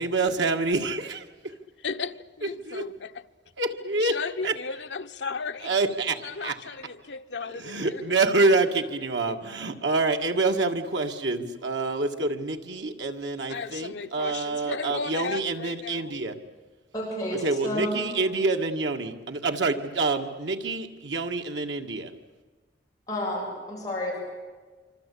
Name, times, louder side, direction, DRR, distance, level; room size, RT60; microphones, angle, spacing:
voice 1, 0.0-1.5 2.7-2.8 3.6-4.2 4.4-4.5 5.6-6.6 7.6-16.4 17.4-22.1, right 3 dB, 90° right, 2.0 m, -27 dB
voice 2, 1.8-3.3 4.0-5.8 6.2-8.2 9.3-9.4 13.5-16.1, left 5 dB, 80° left, 0.9 m, -35 dB
voice 3, 16.9-18.3 23.1-24.3, equal, 20° left, 7.8 m, -31 dB
26.0 x 25.5 x 8.6 m
head